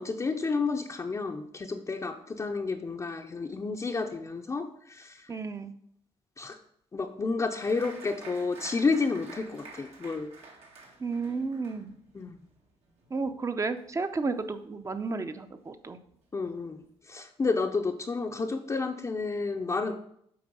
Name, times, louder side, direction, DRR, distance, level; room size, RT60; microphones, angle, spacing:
voice 1, 0.0-5.2 6.4-6.6 6.9-10.3 12.1-12.4 16.3-19.9, left 4 dB, 30° left, 2 dB, 0.6 m, -31 dB
voice 2, 5.3-5.7 11.0-11.9 13.1-16.0, right 4 dB, 30° right, 10 dB, 0.7 m, -32 dB
Applause, 7.6-14.7 14.9-15.7 16.1-16.2 16.5-16.9, right 3 dB, 75° right, 1.9 m, -50 dB
7.8 x 4.6 x 5.4 m, 0.70 s
cardioid pair, 100°, 11 cm